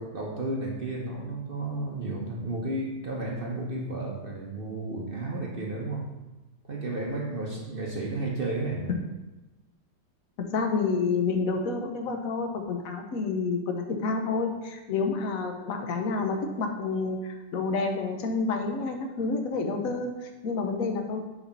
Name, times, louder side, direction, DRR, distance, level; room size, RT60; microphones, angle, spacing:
voice 1, 0.0-6.1 6.7-9.0, right 2 dB, 40° right, -1 dB, 0.9 m, -32 dB
voice 2, 10.4-21.2, left 4 dB, 55° left, 4 dB, 1.2 m, -29 dB
6.5 x 4.9 x 5.8 m, 1.1 s
omnidirectional pair, 2.0 m